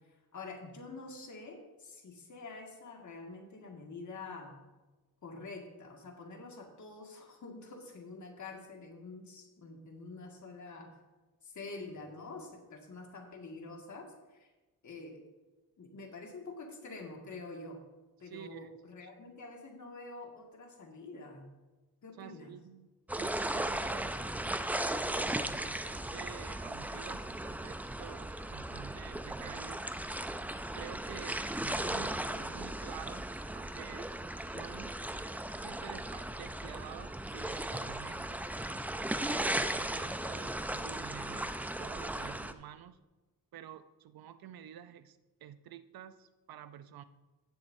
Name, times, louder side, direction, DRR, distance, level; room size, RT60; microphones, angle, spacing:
voice 1, 0.3-4.5 5.2-10.9 11.4-14.5 14.8-15.2 15.8-17.8 18.2-21.5 22.0-22.6, left 3 dB, 50° left, 1 dB, 2.0 m, -47 dB
voice 2, 18.2-18.7 19.0-19.1 22.2-24.2 25.0-29.9 30.7-33.3 33.5-34.1 34.5-34.9 35.6-38.4 39.2-43.0 43.5-47.0, right 10 dB, 75° right, 13 dB, 0.6 m, -49 dB
sound 1, 23.1-42.5, right 1 dB, 5° right, 0.4 m, -37 dB
16.0 x 7.4 x 2.7 m, 1.2 s
cardioid pair, 100°, 37 cm